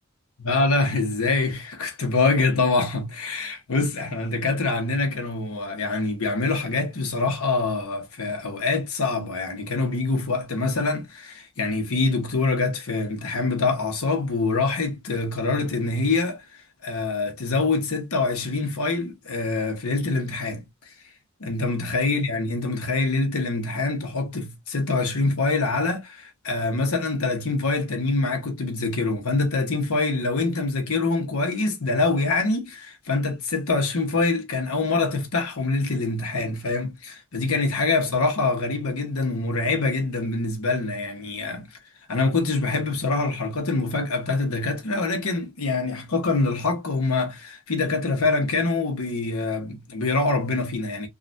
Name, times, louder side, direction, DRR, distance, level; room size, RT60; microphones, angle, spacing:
voice 1, 0.4-16.4 16.8-20.6 21.4-41.7 42.1-51.1, left 3 dB, 80° left, 1.0 m, -25 dB
3.7 x 2.4 x 2.5 m
head